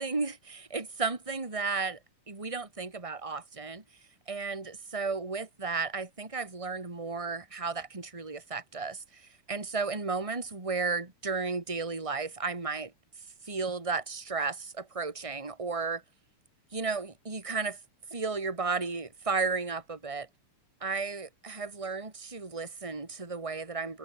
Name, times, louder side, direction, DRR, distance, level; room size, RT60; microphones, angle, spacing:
voice 1, 0.0-2.0 2.3-3.8 4.3-9.2 9.5-12.9 13.5-16.0 16.7-17.8 18.1-20.3 20.8-24.0, right 4 dB, 10° right, 2.5 m, -33 dB
omnidirectional pair, 3.8 m